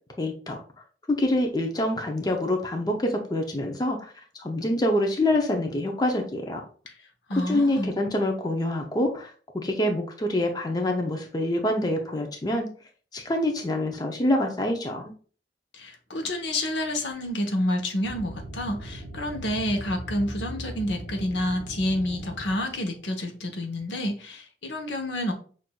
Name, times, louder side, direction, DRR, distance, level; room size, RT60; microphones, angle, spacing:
voice 1, 0.2-0.6 1.1-4.1 4.4-6.6 7.5-12.7 13.1-15.1, left 1 dB, 20° left, 2 dB, 0.5 m, -26 dB
voice 2, 7.3-7.9 15.7-25.3, left 1 dB, 90° left, 3 dB, 0.9 m, -29 dB
sound 1, 18.0-23.1, equal, 60° left, 0.8 m, -39 dB
5.9 x 2.5 x 2.2 m, 0.40 s
head